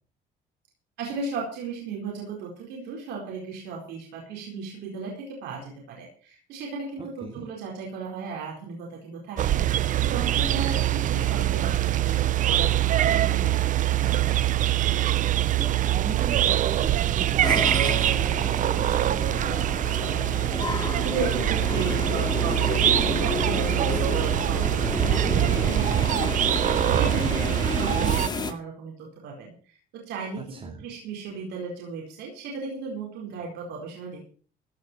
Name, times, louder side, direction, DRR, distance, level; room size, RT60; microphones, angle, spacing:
voice 1, 1.0-9.6 10.0-12.1 12.5-14.3 20.9-29.5 29.9-34.2, right 4 dB, 85° right, 0 dB, 4.7 m, -35 dB
voice 2, 7.0-7.5 15.6-19.7 30.4-30.8, right 4 dB, 35° right, 2 dB, 2.4 m, -39 dB
sound 1, 9.4-28.3, right 13 dB, 50° right, 0.6 m, -24 dB
sound 2, 17.4-28.5, left 4 dB, 25° left, 2.1 m, -31 dB
16.0 x 6.4 x 8.0 m, 0.43 s
cardioid pair, 110°, 17 cm